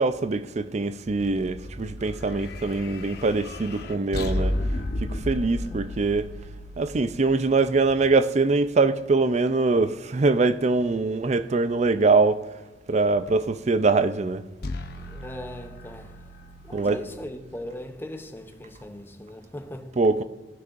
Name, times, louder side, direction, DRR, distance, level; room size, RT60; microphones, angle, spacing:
voice 1, 0.0-4.6 5.0-6.3 6.8-12.4 12.9-14.4 16.7-17.0 20.0-20.2, right 3 dB, 40° right, 0.5 m, -23 dB
sound 1, 1.1-8.4 14.6-18.7, left 1 dB, 65° left, 0.8 m, -34 dB
voice 2, 14.9-16.3 16.6-20.0, left 1 dB, 15° left, 0.7 m, -39 dB
16.5 x 6.1 x 2.6 m
head